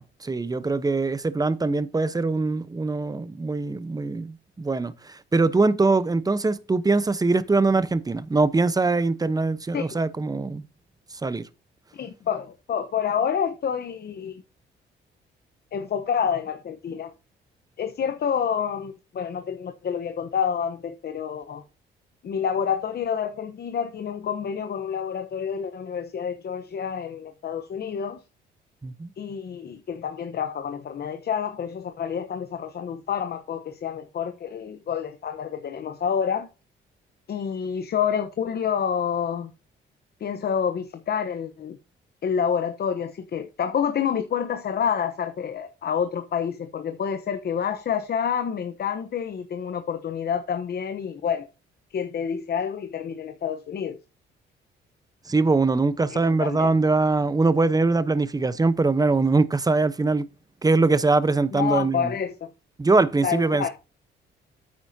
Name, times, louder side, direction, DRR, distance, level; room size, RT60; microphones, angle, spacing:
voice 1, 0.0-10.6 11.2-11.5 28.8-29.1 55.3-60.3 60.6-62.1 62.8-63.7, right 3 dB, 20° right, 0.9 m, -22 dB
voice 2, 11.9-14.4 15.7-17.1 17.8-21.6 22.2-28.2 29.2-36.5 37.3-39.5 40.2-41.8 42.2-51.5 51.9-54.0 56.1-56.7 61.5-62.5 63.2-63.7, left 7 dB, 55° left, 1.0 m, -28 dB
9.3 x 8.4 x 2.8 m
cardioid pair, 90°, 20 cm